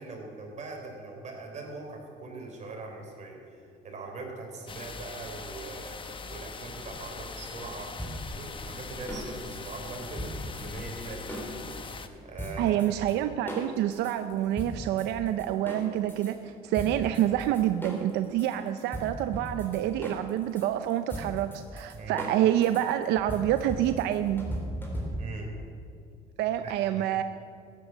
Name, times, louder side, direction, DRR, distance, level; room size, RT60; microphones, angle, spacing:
voice 1, 0.0-6.0 6.3-8.0 8.3-11.8 12.2-13.0 21.9-22.2 25.2-25.5 26.6-27.1, right 3 dB, 45° right, 1 dB, 3.8 m, -41 dB
sound 1, 4.7-12.1, left 4 dB, 30° left, 0.9 m, -41 dB
sound 2, 8.0-11.9 12.4-13.1 13.5-16.3 16.7-25.4, equal, 10° left, 3.8 m, -38 dB
voice 2, 12.6-24.5 26.4-27.2, right 12 dB, 85° right, 10 dB, 0.6 m, -27 dB
14.5 x 9.4 x 7.4 m, 2.4 s
cardioid pair, 110°, 17 cm